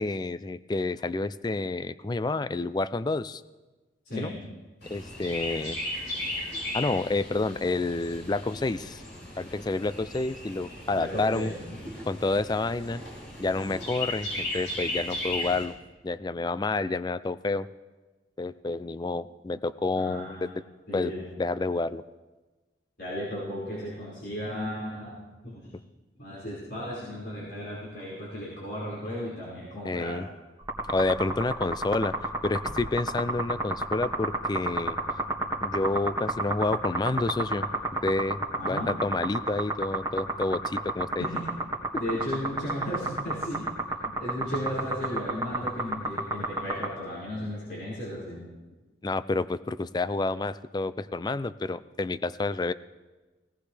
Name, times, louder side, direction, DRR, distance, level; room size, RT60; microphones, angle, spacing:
voice 1, 0.0-3.4 4.2-4.3 4.9-5.8 6.7-9.0 9.4-11.5 12.1-13.0 13.4-15.7 16.0-17.7 18.4-20.6 20.9-22.0 29.8-30.3 30.9-35.0 35.6-37.7 38.0-41.3 41.9-42.0 49.0-52.7, left 3 dB, 25° left, 15 dB, 0.4 m, -29 dB
voice 2, 4.1-4.4 11.0-11.8 20.0-20.5 20.9-21.3 23.0-25.7 26.2-30.2 38.6-38.9 41.2-41.5 41.9-43.6 44.0-48.5, equal, 60° left, -9 dB, 5.3 m, -35 dB
Chirp tweet, 4.8-15.6, left 1 dB, 80° left, 5.6 m, -36 dB
sound 1, 30.6-46.9, right 2 dB, 20° right, 1.9 m, -29 dB
19.0 x 18.0 x 3.3 m, 1.2 s
head